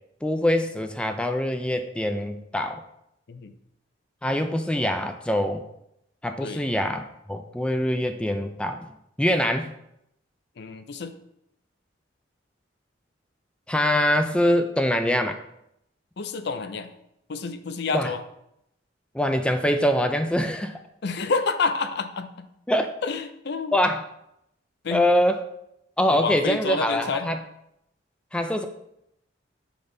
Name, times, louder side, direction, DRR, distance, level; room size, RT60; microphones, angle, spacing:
voice 1, 0.2-2.8 4.2-5.6 6.2-7.0 7.3-8.8 9.2-9.7 13.7-15.4 17.9-18.1 19.1-20.8 22.7-22.9 23.7-24.0 24.9-25.4 26.0-27.4 28.3-28.7, left 1 dB, 5° left, 7 dB, 0.3 m, -24 dB
voice 2, 10.6-11.1 16.2-16.9 17.3-18.2 21.0-22.5 23.0-23.7 24.8-25.1 26.1-27.3, left 4 dB, 60° left, 10 dB, 0.5 m, -29 dB
7.0 x 3.5 x 3.8 m, 0.80 s
head